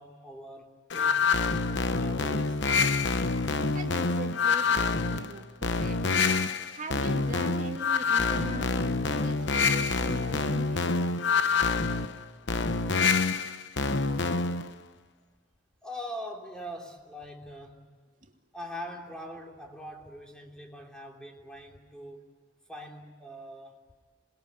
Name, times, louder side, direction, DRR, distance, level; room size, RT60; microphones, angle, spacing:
voice 1, 0.0-1.3 1.9-2.7 15.8-17.9 18.5-22.2 22.7-23.8, equal, 5° left, 1 dB, 3.2 m, -42 dB
sound 1, 0.9-14.7, left 4 dB, 60° left, 1.0 m, -27 dB
voice 2, 3.5-6.0 6.7-10.8 18.2-18.3, right 1 dB, 40° right, 3 dB, 2.4 m, -41 dB
27.5 x 21.0 x 9.5 m, 1.5 s
head